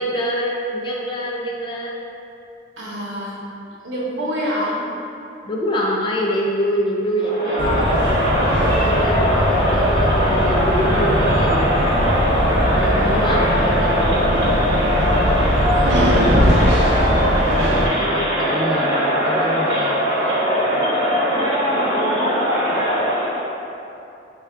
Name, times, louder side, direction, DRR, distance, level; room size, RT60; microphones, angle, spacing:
voice 1, 0.0-2.0 5.5-12.0 12.7-13.5 13.8-14.5 17.2-20.9, equal, 25° left, -3 dB, 0.3 m, -26 dB
voice 2, 2.8-3.4 3.8-4.8 12.8-15.2, equal, 85° right, -6 dB, 0.9 m, -29 dB
Crowd, 7.2-23.5, equal, 25° right, 0.9 m, -20 dB
sound 1, 7.6-17.9, equal, 65° right, 0.6 m, -20 dB
3.3 x 2.3 x 4.3 m, 2.7 s
head